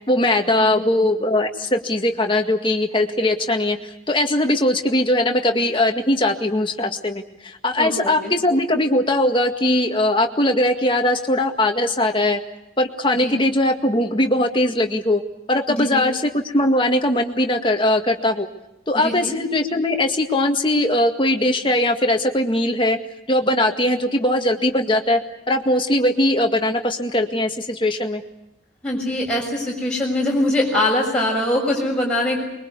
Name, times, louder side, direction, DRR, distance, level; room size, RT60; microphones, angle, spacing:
voice 1, 0.1-12.4 12.8-15.2 15.5-18.5 18.9-23.0 23.3-25.2 25.5-28.2, left 1 dB, 25° left, 4 dB, 1.9 m, -20 dB
voice 2, 7.8-8.3 13.2-13.3 15.7-16.1 18.9-19.3 28.8-32.4, left 1 dB, 5° left, -3 dB, 7.0 m, -23 dB
25.0 x 23.0 x 8.3 m, 0.90 s
head